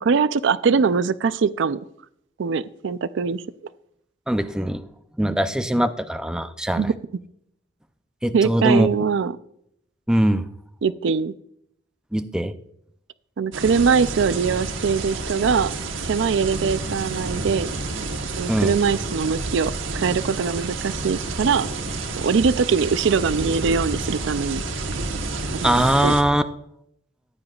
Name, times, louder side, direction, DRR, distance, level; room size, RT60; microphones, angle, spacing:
voice 1, 0.0-1.8 2.4-3.4 6.8-6.9 8.3-9.3 10.8-11.3 13.4-15.7 16.0-17.7 18.4-21.7 22.2-24.6 25.5-26.1, right 5 dB, 70° right, 15 dB, 0.4 m, -22 dB
voice 2, 4.3-4.8 5.2-6.9 8.2-8.9 10.1-10.5 12.1-12.5 18.5-18.7 25.6-26.4, right 1 dB, 5° right, 8 dB, 0.5 m, -21 dB
sound 1, 13.5-26.2, right 3 dB, 85° right, 1.2 m, -29 dB
15.0 x 9.5 x 2.4 m, 0.72 s
head